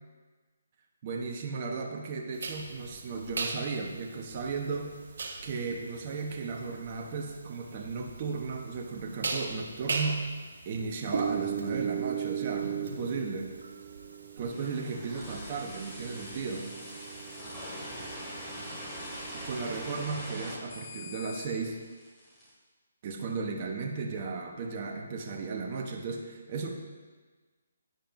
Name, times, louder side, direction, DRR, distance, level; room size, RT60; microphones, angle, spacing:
voice 1, 1.0-4.9 5.4-10.3 10.6-13.5 14.4-16.7 19.3-21.8 23.0-26.7, right 4 dB, 35° right, 1 dB, 1.0 m, -35 dB
sound 1, 2.4-20.0, right 6 dB, 65° right, 1.3 m, -38 dB
sound 2, 14.5-22.5, left 1 dB, 10° left, 2.4 m, -43 dB
11.0 x 8.8 x 2.6 m, 1.4 s
hypercardioid pair, 155°, 0 cm